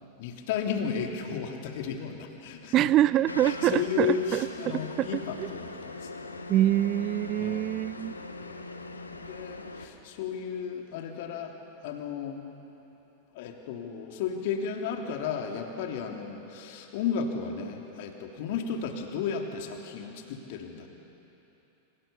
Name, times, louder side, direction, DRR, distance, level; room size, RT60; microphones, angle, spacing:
voice 1, 0.2-2.9 3.4-6.4 7.4-7.8 8.4-8.7 9.1-11.5 11.8-12.4 13.3-20.9, left 7 dB, 50° left, 3 dB, 3.2 m, -34 dB
voice 2, 2.7-5.5 6.5-8.1, right 13 dB, 35° right, 18 dB, 0.5 m, -25 dB
sound 1, 3.3-9.9, left 3 dB, 80° left, 1.5 m, -40 dB
28.5 x 26.5 x 7.2 m, 3.0 s
figure-of-eight pair, 90°, 0 cm